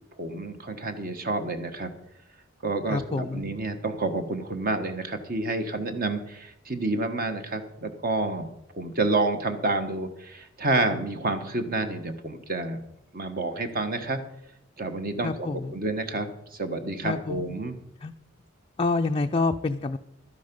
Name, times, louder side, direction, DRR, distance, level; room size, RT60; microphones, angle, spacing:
voice 1, 0.2-1.9 2.6-12.8 13.1-14.2 14.8-17.8, right 2 dB, 45° right, 8 dB, 1.2 m, -29 dB
voice 2, 2.9-3.5 15.2-15.8 17.0-17.6 18.0-18.1 18.8-20.0, left 3 dB, 25° left, 5 dB, 0.4 m, -28 dB
12.0 x 10.5 x 5.3 m, 0.80 s
head